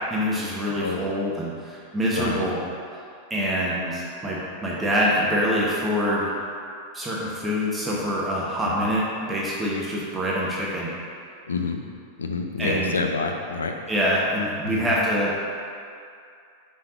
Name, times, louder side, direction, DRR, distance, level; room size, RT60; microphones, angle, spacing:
voice 1, 0.1-2.6 3.3-6.3 6.9-10.9 12.6-12.9 13.9-15.3, equal, 10° right, -6 dB, 1.1 m, -25 dB
voice 2, 2.1-2.5 8.8-8.9 11.5-11.8 12.2-13.7 14.6-14.8, left 4 dB, 70° left, 4 dB, 0.6 m, -28 dB
5.6 x 4.1 x 5.0 m, 2.4 s
figure-of-eight pair, 90°, 0 cm